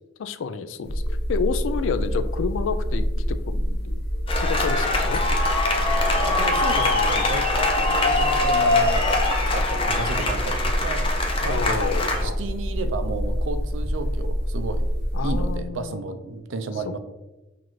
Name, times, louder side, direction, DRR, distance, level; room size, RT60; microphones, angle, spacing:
voice 1, 0.2-4.0 4.3-5.2 11.4-12.4 15.1-16.0, left 5 dB, 80° left, 11 dB, 0.3 m, -30 dB
sound 1, 0.8-15.6, equal, 55° left, 0.9 m, -26 dB
sound 2, 4.3-12.2, left 2 dB, 30° left, 0.6 m, -23 dB
voice 2, 6.2-9.2 9.5-11.1 11.4-11.9 12.2-14.9 15.2-17.0, right 3 dB, 90° right, 9 dB, 0.5 m, -32 dB
5.8 x 2.5 x 3.0 m, 1.1 s
head